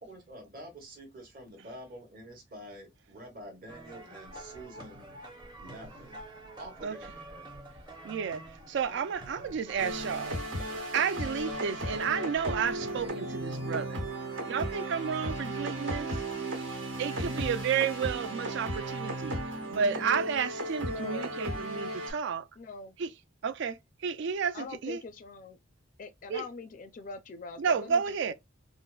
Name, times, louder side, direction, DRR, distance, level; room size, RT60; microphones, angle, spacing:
voice 1, 0.0-5.1 5.6-6.2 6.6-7.5, right 1 dB, 50° right, 1.2 m, -47 dB
sound 1, 3.7-13.1, right 1 dB, 25° right, 0.7 m, -47 dB
voice 2, 8.0-10.4 10.9-14.0 14.5-16.2 17.0-19.3 19.7-22.5 23.0-23.1 23.4-25.0 26.3-26.4 27.6-28.3, right 6 dB, 65° right, 0.4 m, -31 dB
Space Blueberry Picking, 9.8-22.1, right 1 dB, 85° right, 1.5 m, -35 dB
voice 3, 20.8-21.3 22.6-23.0 24.5-25.6 26.0-28.3, left 4 dB, 45° left, 0.4 m, -43 dB
3.8 x 2.0 x 2.3 m
head